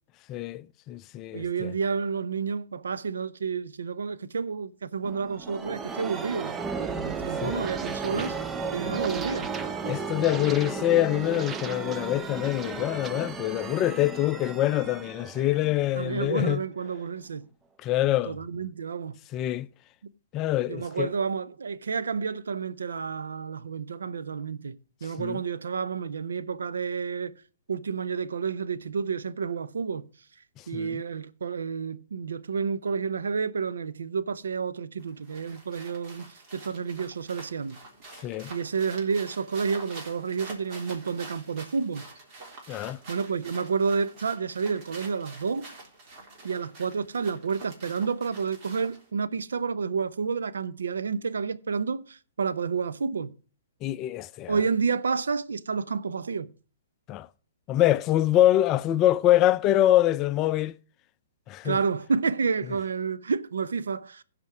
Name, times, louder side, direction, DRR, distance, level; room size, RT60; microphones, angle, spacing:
voice 1, 0.3-1.7 7.4-7.7 9.9-16.6 17.8-18.4 19.3-19.7 20.3-21.1 25.2-25.4 30.7-31.0 38.2-38.5 42.7-43.0 53.8-54.6 57.1-57.3 57.7-60.7 61.5-61.8, left 13 dB, 30° left, 0.4 m, -25 dB
voice 2, 1.3-6.6 7.0-8.4 8.7-9.5 16.0-17.5 18.3-19.2 20.7-24.8 25.0-27.3 27.7-30.1 30.7-37.8 38.5-42.1 43.1-45.6 46.4-53.3 54.5-56.5 61.6-64.2, right 5 dB, 85° right, 0.7 m, -30 dB
sound 1, 5.0-16.5, right 5 dB, 15° right, 0.6 m, -34 dB
sound 2, 35.0-49.1, right 2 dB, 35° right, 3.6 m, -47 dB
15.5 x 5.2 x 4.8 m
hypercardioid pair, 135°, 0 cm